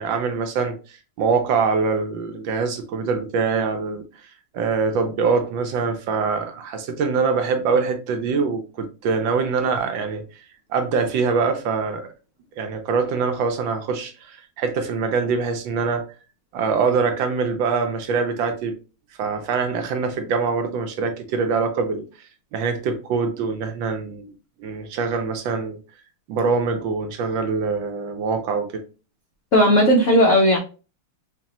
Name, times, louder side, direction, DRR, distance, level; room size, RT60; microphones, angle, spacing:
voice 1, 0.0-4.0 4.5-10.2 10.7-12.1 12.6-16.0 16.5-18.7 19.2-22.0 22.5-24.3 24.6-25.8 26.3-28.8, right 5 dB, 70° right, 1.3 m, -24 dB
voice 2, 29.5-30.6, equal, 70° left, 0.7 m, -15 dB
4.8 x 2.6 x 2.9 m
omnidirectional pair, 2.3 m